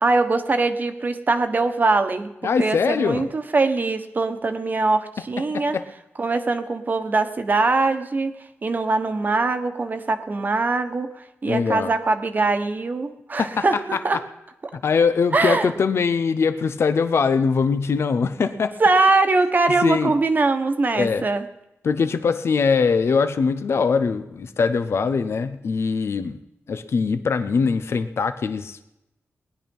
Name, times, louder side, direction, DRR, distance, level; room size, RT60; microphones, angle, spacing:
voice 1, 0.0-2.3 2.6-5.8 6.2-8.3 8.6-14.2 15.3-15.7 18.8-21.4, right 3 dB, 40° right, 8 dB, 1.2 m, -22 dB
voice 2, 2.4-3.3 5.5-5.8 11.5-11.9 13.4-13.6 14.7-18.7 19.7-20.1 20.9-21.2 21.8-26.4 26.7-28.8, left 5 dB, 60° left, 11 dB, 0.8 m, -22 dB
19.5 x 10.5 x 5.5 m, 0.90 s
wide cardioid pair, 105°, 5 cm